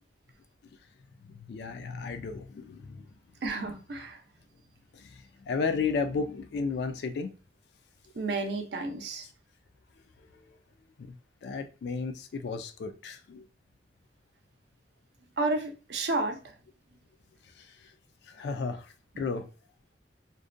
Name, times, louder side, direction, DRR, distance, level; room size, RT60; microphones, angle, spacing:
voice 1, 1.2-3.1 4.9-7.3 10.3-10.4 11.0-11.2 11.4-13.5 17.6-17.9 18.2-19.5, left 4 dB, 65° left, 0.3 m, -34 dB
voice 2, 3.4-4.2 8.2-9.3 15.4-16.4, right 2 dB, 65° right, 0.5 m, -31 dB
2.6 x 2.1 x 2.4 m
head